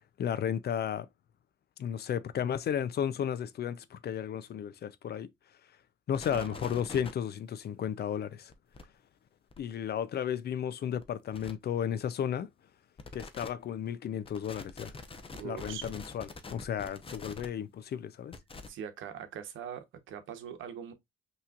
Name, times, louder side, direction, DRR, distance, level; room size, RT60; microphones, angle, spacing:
voice 1, 0.2-1.1 1.8-5.3 6.1-8.5 9.6-12.5 13.1-14.9 15.4-18.4, left 9 dB, 55° left, 0.5 m, -33 dB
sound 1, 6.1-7.1 8.5-8.8 9.5-9.6 11.0-11.1 11.3-11.5 13.0-13.5 14.2-17.5 18.3-18.7, left 3 dB, 25° left, 0.8 m, -44 dB
voice 2, 6.3-6.6 15.4-15.9 18.7-20.9, right 8 dB, 80° right, 0.9 m, -42 dB
5.7 x 3.1 x 2.4 m
cardioid pair, 90°, 20 cm